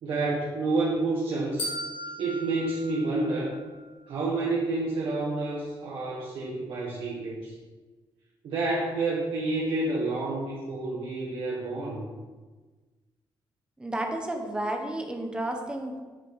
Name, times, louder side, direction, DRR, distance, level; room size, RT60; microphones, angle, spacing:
voice 1, 0.0-1.7 2.2-3.5 4.1-7.5 8.4-12.0, right 2 dB, 70° right, -6 dB, 1.4 m, -29 dB
sound 1, 1.6-3.8, left 1 dB, 85° left, 2.0 m, -37 dB
voice 2, 13.8-16.0, right 1 dB, 10° right, 2 dB, 0.8 m, -32 dB
8.8 x 4.7 x 3.6 m, 1.3 s
cardioid pair, 145°, 9 cm